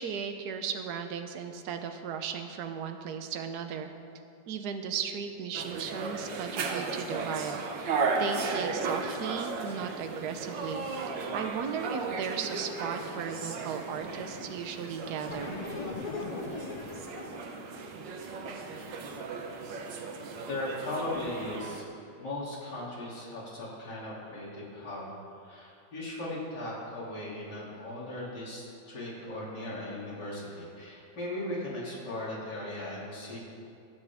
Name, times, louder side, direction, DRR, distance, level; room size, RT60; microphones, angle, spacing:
voice 1, 0.0-3.9 4.5-10.9 11.3-15.6, right 7 dB, 65° right, 6 dB, 1.3 m, -36 dB
sound 1, 5.5-21.8, right 4 dB, 85° right, 1.7 m, -36 dB
sound 2, 13.9-14.6 15.2-17.5, left 3 dB, 90° left, 0.3 m, -39 dB
voice 2, 20.5-21.9 22.2-25.1 25.4-33.4, left 1 dB, 70° left, -8 dB, 3.5 m, -38 dB
20.5 x 8.2 x 3.5 m, 2.6 s
omnidirectional pair, 1.9 m